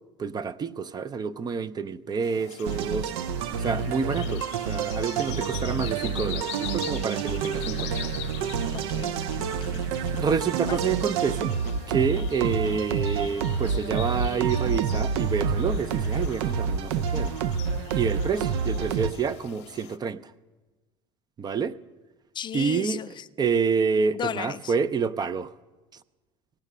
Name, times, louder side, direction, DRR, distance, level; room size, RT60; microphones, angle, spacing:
voice 1, 0.2-3.1 3.6-7.9 10.2-11.5 11.9-17.3 17.9-20.3 21.4-21.8 22.5-23.0 23.4-25.5, right 5 dB, 30° right, 0.5 m, -28 dB
sound 1, 2.2-20.0, left 13 dB, 70° left, 0.7 m, -43 dB
sound 2, 2.6-19.1, right 6 dB, 70° right, 0.6 m, -28 dB
voice 2, 8.9-9.9 10.7-10.8 22.3-23.3 24.1-24.7, left 9 dB, 30° left, 0.4 m, -35 dB
18.0 x 7.3 x 6.6 m
hypercardioid pair, 75°, 15 cm